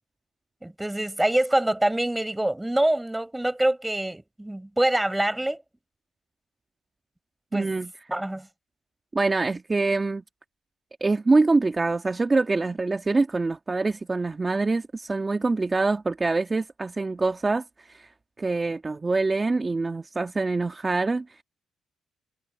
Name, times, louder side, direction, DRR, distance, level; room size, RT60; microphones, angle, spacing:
voice 1, 0.6-5.6 7.5-7.7 8.1-8.5, right 1 dB, 10° right, 7.4 m, -25 dB
voice 2, 7.5-7.9 9.1-10.2 11.0-18.1 18.4-21.4, right 3 dB, 25° right, 2.1 m, -25 dB
cardioid pair, 90°, 0 cm